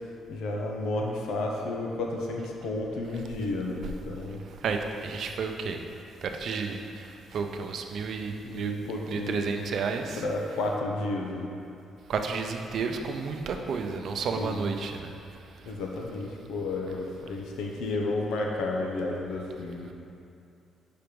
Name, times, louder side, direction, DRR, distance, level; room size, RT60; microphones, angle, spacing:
voice 1, 0.3-4.4 8.4-9.5 10.1-11.5 14.4-14.7 15.7-19.9, left 2 dB, 85° left, 0 dB, 0.7 m, -32 dB
voice 2, 4.6-5.8 6.2-8.7 9.1-10.6 12.1-15.1, right 5 dB, 65° right, 5 dB, 0.5 m, -32 dB
5.0 x 4.5 x 5.2 m, 2.5 s
cardioid pair, 90°, 0 cm